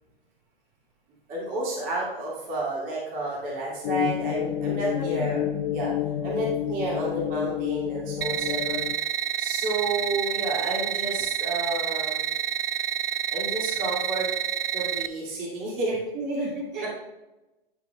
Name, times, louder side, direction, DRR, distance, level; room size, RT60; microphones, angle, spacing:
voice 1, 1.3-5.4 5.7-5.9 6.2-8.8 9.4-12.3 13.3-14.3 14.7-16.0, right 2 dB, 30° right, -5 dB, 2.6 m, -30 dB
sound 1, 3.8-9.0, left 12 dB, 30° left, 0.4 m, -29 dB
voice 2, 4.9-5.3 16.1-16.9, right 1 dB, 45° right, -2 dB, 2.7 m, -32 dB
sound 2, 8.2-15.1, right 9 dB, 75° right, 0.5 m, -29 dB
11.5 x 6.2 x 2.4 m, 1.0 s
hypercardioid pair, 120°, 29 cm